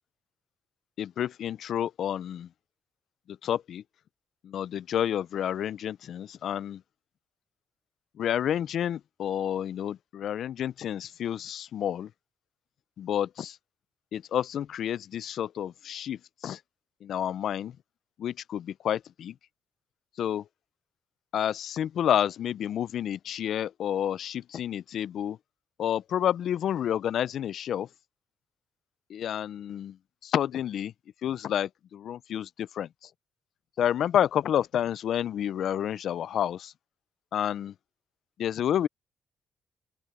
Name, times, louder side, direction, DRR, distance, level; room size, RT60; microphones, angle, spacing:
voice 1, 1.0-2.5 3.3-3.8 4.4-6.8 8.2-12.1 13.0-13.6 14.1-16.6 17.0-17.8 18.2-19.4 20.2-20.5 21.3-25.4 25.8-27.9 29.1-30.0 30.2-30.9 31.2-33.1 33.8-36.7 37.3-37.7 38.4-38.9, left 10 dB, 70° left, 0.4 m, -29 dB
open air
cardioid pair, 90°, 0 cm